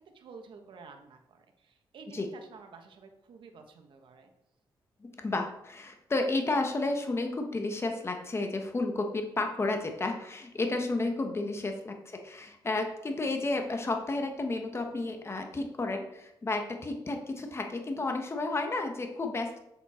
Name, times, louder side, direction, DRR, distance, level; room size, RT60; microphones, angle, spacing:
voice 1, 0.0-4.3 12.4-12.6, right 5 dB, 75° right, 5 dB, 1.3 m, -51 dB
voice 2, 5.2-19.6, left 2 dB, 30° left, 4 dB, 1.3 m, -32 dB
7.5 x 6.9 x 4.4 m, 0.81 s
cardioid pair, 90°, 9 cm